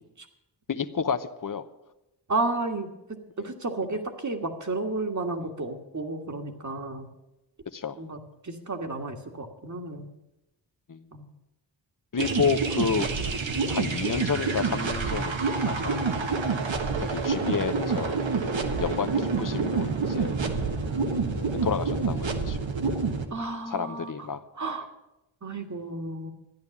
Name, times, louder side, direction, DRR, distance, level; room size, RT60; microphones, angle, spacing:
voice 1, 0.7-1.7 7.7-8.0 10.9-11.0 12.1-13.1 13.7-15.4 15.6-16.0 17.0-18.2 18.8-20.4 21.6-22.6 23.7-24.4, left 6 dB, 45° left, 12 dB, 0.9 m, -30 dB
voice 2, 2.3-7.1 8.0-8.2 8.4-10.1 11.1-11.2 15.8-16.0 20.4-20.6 23.3-24.1 24.6-24.9 25.4-26.3, right 3 dB, 40° right, 5 dB, 1.7 m, -32 dB
sound 1, 12.2-23.2, right 4 dB, 75° right, 1.5 m, -27 dB
13.0 x 10.5 x 7.1 m, 0.93 s
wide cardioid pair, 85°, 46 cm